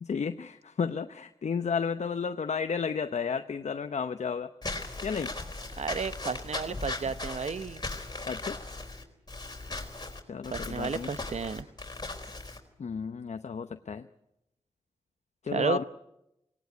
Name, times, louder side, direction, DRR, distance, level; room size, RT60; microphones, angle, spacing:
voice 1, 0.0-4.5 5.0-5.3 8.3-8.6 10.3-11.1 12.8-14.1 15.4-15.8, left 6 dB, 75° left, 9 dB, 0.7 m, -32 dB
Walk footsteps / Squeak, 4.6-12.6, left 2 dB, 35° left, 4.3 m, -38 dB
voice 2, 5.8-7.8 10.5-11.7 15.5-15.8, right 5 dB, 70° right, 14 dB, 0.8 m, -32 dB
18.5 x 18.5 x 9.5 m, 0.86 s
cardioid pair, 45°, 12 cm